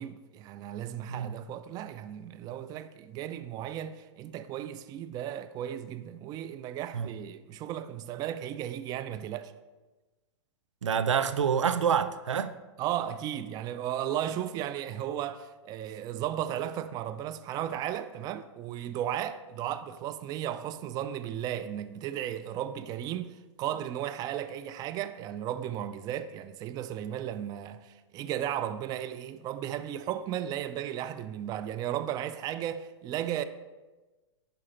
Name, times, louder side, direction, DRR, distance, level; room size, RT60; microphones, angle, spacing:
voice 1, 0.0-9.5 12.8-33.4, right 11 dB, 25° right, 0.4 m, -35 dB
voice 2, 10.8-12.5, right 7 dB, 90° right, 0.6 m, -27 dB
11.0 x 4.9 x 4.3 m
hypercardioid pair, 125°, 15 cm